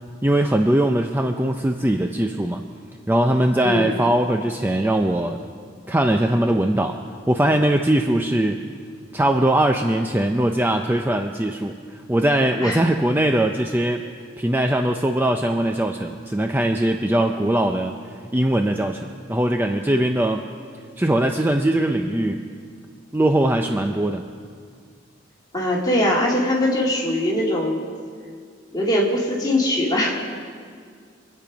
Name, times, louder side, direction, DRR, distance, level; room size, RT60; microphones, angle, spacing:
voice 1, 0.2-2.6 3.1-5.4 5.9-7.0 7.3-8.6 9.1-14.0 14.4-17.9 18.3-20.5 21.0-22.4 23.1-24.2, right 1 dB, 10° right, 4 dB, 0.5 m, -21 dB
voice 2, 25.5-27.8 28.7-30.4, left 1 dB, 20° left, -3 dB, 2.5 m, -21 dB
25.5 x 8.8 x 5.1 m, 2.1 s
head